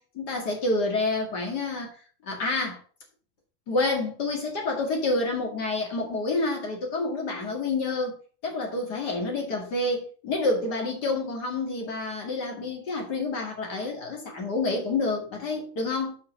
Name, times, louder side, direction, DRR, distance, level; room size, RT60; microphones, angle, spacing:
voice 1, 0.0-2.8 3.7-8.2 8.4-16.1, left 2 dB, 40° left, 1.4 m, -28 dB
7.1 x 5.7 x 5.3 m
omnidirectional pair, 4.8 m